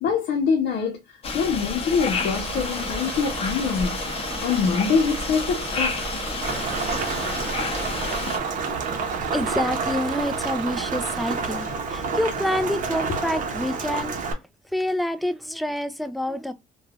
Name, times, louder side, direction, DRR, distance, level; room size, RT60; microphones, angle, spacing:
voice 1, 0.0-4.0 4.4-6.1 13.1-13.2, left 5 dB, 70° left, 0.7 m, -24 dB
sound 1, 1.2-8.4, left 4 dB, 35° left, 0.8 m, -30 dB
Bus / Engine, 2.1-11.4, right 9 dB, 85° right, 0.6 m, -36 dB
Rain, 6.4-14.3, right 4 dB, 50° right, 0.7 m, -29 dB
voice 2, 9.2-14.4 14.6-16.5, left 1 dB, ahead, 0.4 m, -27 dB
3.1 x 2.3 x 2.3 m
cardioid pair, 110°, 17 cm